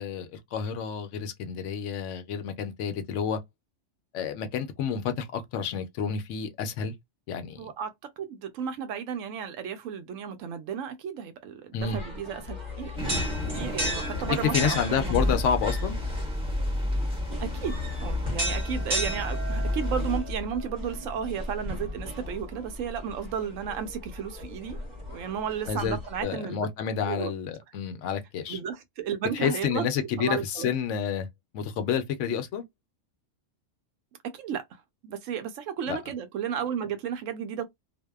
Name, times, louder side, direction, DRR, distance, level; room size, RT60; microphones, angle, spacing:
voice 1, 0.0-3.4 4.1-6.9 7.3-7.7 11.7-12.0 14.3-16.0 25.7-28.6 29.3-31.3 31.5-32.6 35.9-36.0, left 7 dB, 75° left, 0.9 m, -29 dB
voice 2, 7.6-7.9 8.2-12.9 13.4-15.4 17.4-17.8 18.0-24.8 25.1-26.7 27.0-27.3 28.5-29.9 30.2-30.7 34.2-34.6 35.0-37.7, right 8 dB, 85° right, 1.0 m, -33 dB
sound 1, 11.8-26.2, left 1 dB, 40° right, 1.1 m, -35 dB
sound 2, 13.0-20.2, left 1 dB, 5° right, 0.6 m, -30 dB
2.6 x 2.1 x 2.2 m
omnidirectional pair, 1.3 m